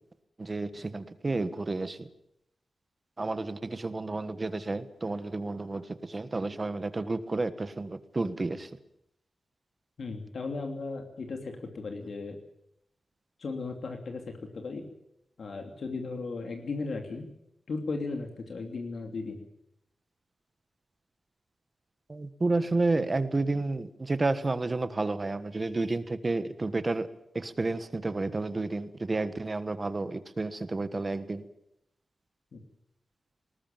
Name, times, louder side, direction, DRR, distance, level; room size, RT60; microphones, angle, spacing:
voice 1, 0.4-2.1 3.2-8.7 22.1-27.1 27.3-31.4, right 3 dB, 25° right, 12 dB, 1.3 m, -31 dB
voice 2, 10.0-12.4 13.4-14.8 15.4-17.3 17.7-19.4 32.5-32.6, left 3 dB, 60° left, 4 dB, 2.8 m, -36 dB
20.0 x 19.5 x 9.0 m, 0.78 s
wide cardioid pair, 175°, 0 cm